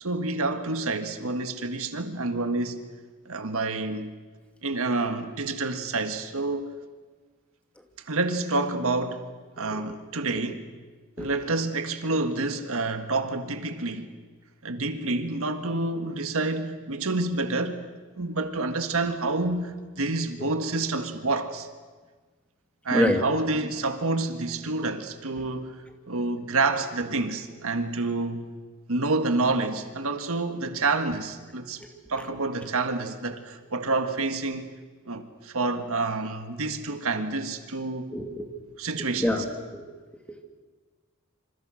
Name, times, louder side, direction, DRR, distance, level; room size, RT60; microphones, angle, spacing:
voice 1, 0.0-2.8 3.3-4.1 4.6-6.7 8.1-9.3 9.6-10.6 11.2-14.1 14.6-17.8 18.2-21.7 22.9-25.8 26.1-28.5 28.9-31.8 32.1-34.8 35.1-38.1 38.8-39.3, right 3 dB, 65° right, 1.8 m, -28 dB
voice 2, 22.9-23.2 25.4-25.5 31.8-31.9 38.1-38.5 39.2-39.4 39.7-39.8, left 1 dB, 5° left, 2.8 m, -26 dB
27.5 x 26.5 x 6.5 m
head